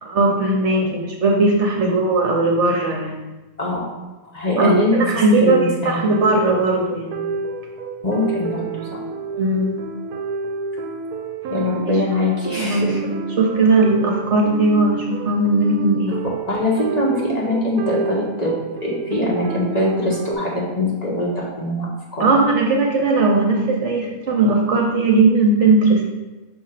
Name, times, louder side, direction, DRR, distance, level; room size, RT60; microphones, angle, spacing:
voice 1, 0.0-3.2 4.6-7.3 9.3-9.8 12.6-13.1 13.4-16.2 22.2-26.1, right 2 dB, 55° right, 0 dB, 1.0 m, -18 dB
voice 2, 4.3-6.1 8.0-9.0 11.5-13.0 16.5-18.5 18.8-22.3, left 1 dB, 30° left, -5 dB, 1.2 m, -22 dB
sound 1, 5.9-20.3, right 4 dB, 80° right, 1.1 m, -29 dB
6.2 x 2.9 x 5.6 m, 1.1 s
omnidirectional pair, 1.6 m